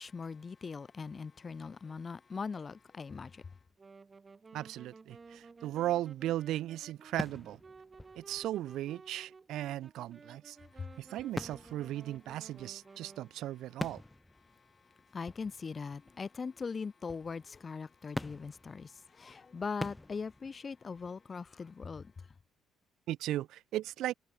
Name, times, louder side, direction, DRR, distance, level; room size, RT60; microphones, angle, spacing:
voice 1, 0.0-3.5 10.8-10.9 15.1-22.1, left 5 dB, 30° left, 1.1 m, -41 dB
Wind instrument woodwind instrument, 3.8-13.3, right 4 dB, 25° right, 7.1 m, -55 dB
voice 2, 4.5-7.6 8.2-10.6 11.0-14.0 23.1-24.1, right 14 dB, 75° right, 2.1 m, -36 dB
sound 1, 5.1-5.8 6.2-6.3 7.2-9.1 11.2-12.9 13.2-13.3 13.8-16.7 17.0-17.8 18.2-21.3, left 1 dB, 10° left, 1.8 m, -45 dB
cardioid pair, 100°, 0 cm